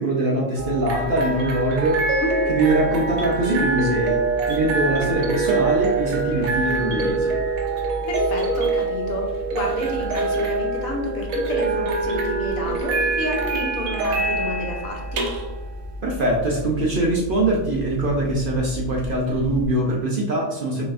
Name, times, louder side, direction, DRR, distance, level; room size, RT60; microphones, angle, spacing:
voice 1, 0.0-2.2 2.5-7.3 16.0-20.8, right 1 dB, 55° right, -2 dB, 0.6 m, -22 dB
sound 1, 0.5-19.7, right 3 dB, 85° right, 1.1 m, -25 dB
voice 2, 2.2-2.5 8.1-15.3, left 1 dB, 85° left, 0 dB, 1.3 m, -30 dB
4.0 x 3.3 x 2.5 m, 1.0 s
omnidirectional pair, 1.4 m